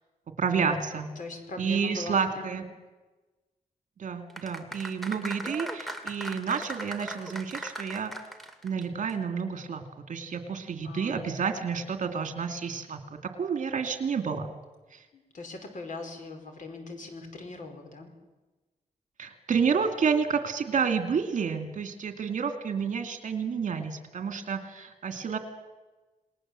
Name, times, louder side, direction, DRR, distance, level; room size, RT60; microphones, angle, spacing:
voice 1, 0.4-1.1 1.6-2.6 4.0-8.1 8.6-14.5 14.9-15.0 19.2-25.4, right 6 dB, 60° right, 7 dB, 2.5 m, -30 dB
voice 2, 1.2-2.6 10.8-11.4 15.1-18.1, left 2 dB, 60° left, 5 dB, 4.7 m, -41 dB
sound 1, 4.3-8.8 9.1-9.2, right 1 dB, ahead, 2.3 m, -38 dB
28.5 x 19.5 x 7.7 m, 1.2 s
wide cardioid pair, 170°, 15 cm